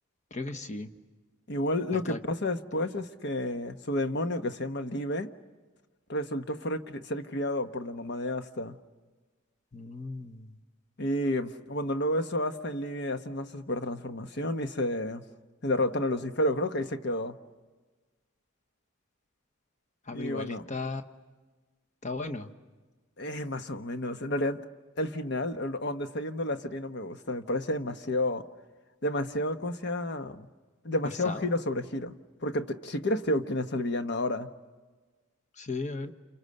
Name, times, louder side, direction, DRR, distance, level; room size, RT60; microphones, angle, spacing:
voice 1, 0.3-0.9 2.1-2.2 9.7-10.6 20.0-21.0 22.0-22.5 31.0-31.5 35.6-36.1, left 3 dB, 35° left, 7 dB, 1.2 m, -36 dB
voice 2, 1.5-5.3 6.1-8.8 11.0-15.2 15.6-17.4 20.1-20.6 23.2-24.6 25.0-28.4 29.0-30.5 30.8-32.2 32.4-34.5, left 1 dB, 55° left, 8 dB, 1.2 m, -31 dB
30.0 x 29.0 x 6.7 m, 1.3 s
head